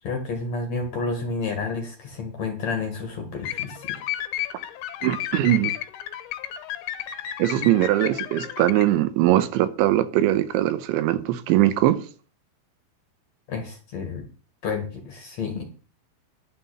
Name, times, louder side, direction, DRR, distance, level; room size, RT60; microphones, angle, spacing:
voice 1, 0.0-4.0 4.5-4.6 13.5-14.3 14.6-15.6, left 4 dB, 55° left, 2.1 m, -30 dB
sound 1, 3.4-9.0, left 12 dB, 70° left, 2.5 m, -32 dB
voice 2, 5.0-5.7 7.4-12.0, right 14 dB, 80° right, 3.1 m, -21 dB
11.5 x 6.1 x 8.6 m
omnidirectional pair, 5.6 m